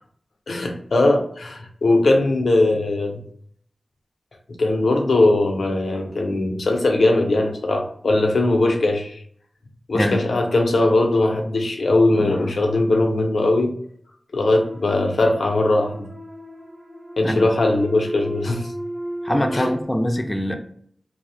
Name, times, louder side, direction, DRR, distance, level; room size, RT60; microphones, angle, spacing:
voice 1, 0.5-3.2 4.6-9.2 9.9-13.8 14.3-16.1 17.2-18.7 19.5-19.7, left 2 dB, 85° left, 3 dB, 0.4 m, -20 dB
sound 1, 14.4-19.8, right 1 dB, 70° right, 0.9 m, -35 dB
voice 2, 19.2-20.6, equal, 15° left, 4 dB, 0.3 m, -22 dB
2.3 x 2.0 x 2.6 m, 0.62 s
wide cardioid pair, 60°, 0 cm